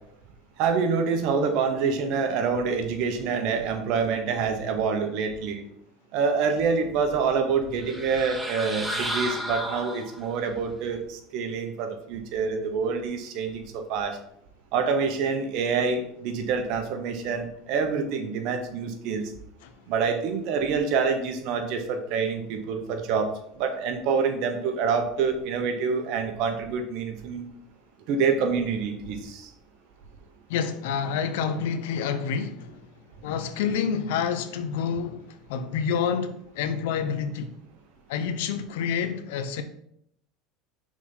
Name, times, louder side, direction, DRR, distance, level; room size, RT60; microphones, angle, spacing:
voice 1, 0.6-5.6 6.1-14.2 14.7-19.3 19.9-23.3 23.6-27.5 28.1-29.5, right 5 dB, 65° right, 1.1 m, -26 dB
sound 1, 7.8-10.4, right 1 dB, 5° right, 0.9 m, -32 dB
voice 2, 30.5-32.8 33.2-37.5 38.1-39.6, left 7 dB, 80° left, 0.7 m, -28 dB
6.0 x 4.1 x 3.9 m
supercardioid pair, 110°, 0 cm